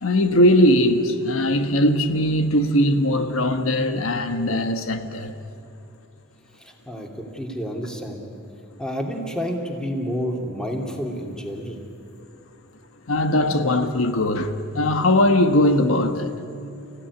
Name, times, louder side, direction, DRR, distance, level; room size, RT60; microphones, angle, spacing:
voice 1, 0.0-5.3 13.1-16.3, left 1 dB, 80° left, 1.3 m, -20 dB
voice 2, 6.6-8.2 8.8-11.8, equal, 5° left, 2.8 m, -29 dB
30.0 x 16.0 x 9.8 m
head